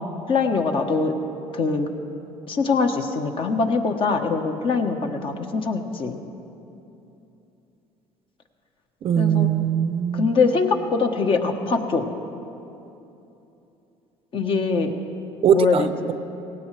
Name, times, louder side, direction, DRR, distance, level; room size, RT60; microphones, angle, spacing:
voice 1, 0.3-1.1 1.5-1.9 2.5-6.2 9.2-9.5 10.1-12.1 14.3-14.9 15.5-15.9, left 4 dB, 45° left, 5 dB, 1.2 m, -23 dB
voice 2, 9.0-10.3 15.4-16.1, right 9 dB, 45° right, 11 dB, 0.6 m, -21 dB
18.0 x 16.5 x 3.3 m, 2.9 s
supercardioid pair, 100°, 13 cm